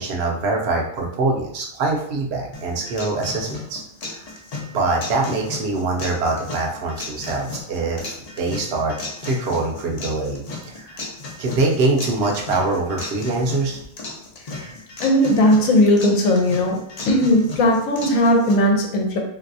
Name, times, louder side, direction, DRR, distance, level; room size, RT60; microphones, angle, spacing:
voice 1, 0.0-4.2 4.7-9.0 9.2-11.0 11.4-13.8, right 3 dB, 60° right, 0 dB, 0.8 m, -24 dB
sound 1, 2.5-18.5, left 3 dB, 50° left, 0.4 m, -35 dB
voice 2, 15.0-16.8 17.1-19.2, left 1 dB, 80° left, 2 dB, 1.0 m, -17 dB
3.3 x 2.6 x 2.6 m, 0.72 s
omnidirectional pair, 1.4 m